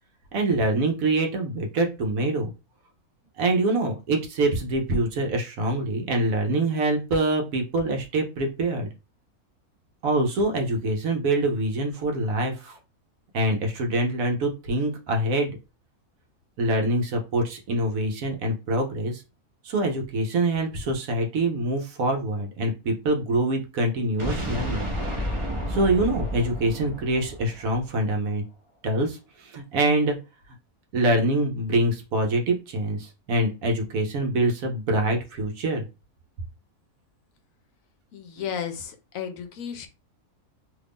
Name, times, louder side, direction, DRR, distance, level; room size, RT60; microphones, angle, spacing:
voice 1, 0.3-2.5 3.4-8.9 10.0-12.8 13.3-15.5 16.6-19.2 19.6-24.9 25.7-28.4 28.8-30.2 30.9-35.8, right 1 dB, 70° right, 3 dB, 1.1 m, -25 dB
sound 1, 24.2-28.1, equal, 30° right, 0.6 m, -31 dB
voice 2, 38.1-39.9, left 8 dB, 70° left, 6 dB, 0.9 m, -33 dB
2.9 x 2.5 x 3.5 m, 0.29 s
omnidirectional pair, 1.6 m